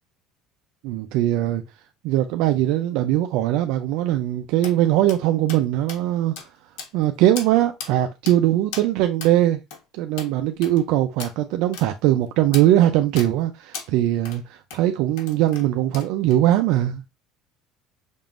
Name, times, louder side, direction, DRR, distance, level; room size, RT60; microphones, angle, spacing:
voice 1, 0.8-1.6 2.0-6.3 6.9-9.6 9.9-17.1, right 13 dB, 70° right, 0.4 m, -21 dB
sound 1, 4.6-4.8 5.1-5.2 5.5-5.6 5.9-6.0 6.4-6.5 6.8-7.0 7.4-7.5 7.8-7.9 8.3-8.4 8.7-8.9 9.2-9.3 9.7-9.8 10.2-10.3 10.6-10.8 11.2-11.3 11.7-11.9 12.5-12.7 13.2-13.3 13.7-13.9 14.3-14.4 14.7-14.8 15.2-15.7 15.9-16.4, left 6 dB, 90° left, 1.4 m, -36 dB
5.8 x 3.6 x 2.5 m
cardioid pair, 155°, 0 cm